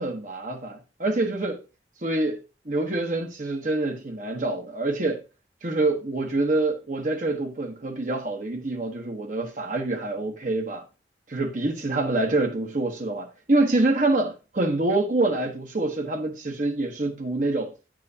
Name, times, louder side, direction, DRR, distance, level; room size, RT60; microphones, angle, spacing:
voice 1, 0.0-1.6 2.0-5.2 5.6-10.8 11.3-17.7, right 2 dB, 45° right, 1.1 m, -26 dB
9.6 x 7.5 x 2.8 m
head